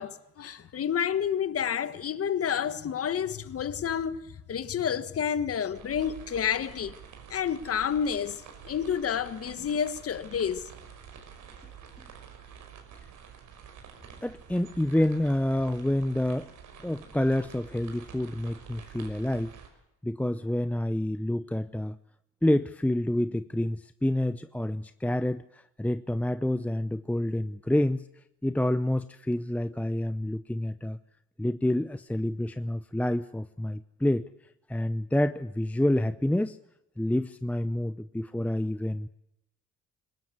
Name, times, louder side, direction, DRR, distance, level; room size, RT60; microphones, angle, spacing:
voice 1, 0.0-4.2 4.5-7.0 7.3-10.7, left 8 dB, 50° left, 1.5 m, -29 dB
sound 1, 5.7-19.7, right 7 dB, 80° right, 5.6 m, -48 dB
voice 2, 14.2-16.5 16.8-19.5 20.0-22.0 22.4-28.1 28.4-31.0 31.4-34.3 34.7-36.6 37.0-39.1, left 1 dB, 5° left, 0.8 m, -28 dB
22.5 x 20.0 x 8.1 m
cardioid pair, 90°, 30 cm